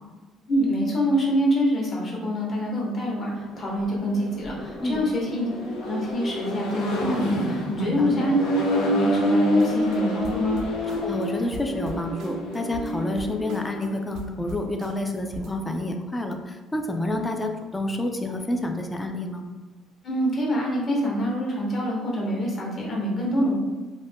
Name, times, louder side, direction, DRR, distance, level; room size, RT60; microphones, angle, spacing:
voice 1, 0.5-5.5 5.8-8.3 8.6-10.6 20.0-23.6, equal, 40° left, -3 dB, 0.9 m, -26 dB
Accelerating revving vroom, 3.5-13.9, equal, 80° left, 0.5 m, -27 dB
voice 2, 4.8-5.1 7.8-8.1 11.0-19.4 23.4-23.5, left 1 dB, 15° left, 4 dB, 0.3 m, -29 dB
sound 1, 9.6-10.0 10.2-11.2 11.5-13.9 14.1-15.6, equal, 75° right, 0.4 m, -40 dB
2.5 x 2.1 x 3.4 m, 1.2 s
cardioid pair, 105°, 0 cm